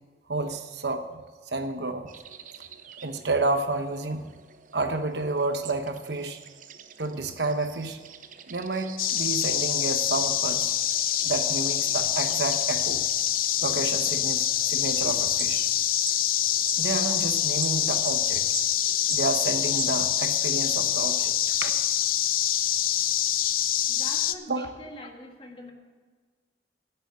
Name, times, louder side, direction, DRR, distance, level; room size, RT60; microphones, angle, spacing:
voice 1, 0.3-2.1 3.0-4.3 4.7-6.4 7.0-8.0 8.5-10.7 11.2-13.0 13.6-15.7 16.8-18.5 19.1-21.3 21.6-21.7 24.5-24.7, right 3 dB, 75° right, 7 dB, 1.0 m, -30 dB
sound 1, 2.1-20.4, right 9 dB, 45° right, 0.7 m, -44 dB
sound 2, 9.0-24.3, left 11 dB, 55° left, 0.5 m, -25 dB
voice 2, 23.9-25.7, left 1 dB, 30° left, 2 dB, 1.6 m, -43 dB
10.5 x 8.0 x 7.7 m, 1.5 s
head